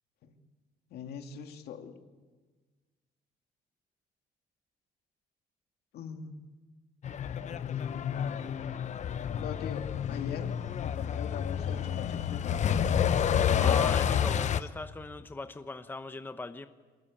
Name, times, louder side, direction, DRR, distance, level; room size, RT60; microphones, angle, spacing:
voice 1, 0.9-2.0 5.9-6.4 8.9-12.8 14.6-14.7, left 7 dB, 70° left, 5 dB, 2.5 m, -42 dB
Truck, 7.0-14.6, left 8 dB, 45° left, 0.9 m, -29 dB
voice 2, 13.6-16.7, left 3 dB, 10° left, 9 dB, 0.9 m, -39 dB
23.5 x 20.0 x 8.7 m, 1.4 s
cardioid pair, 110°, 17 cm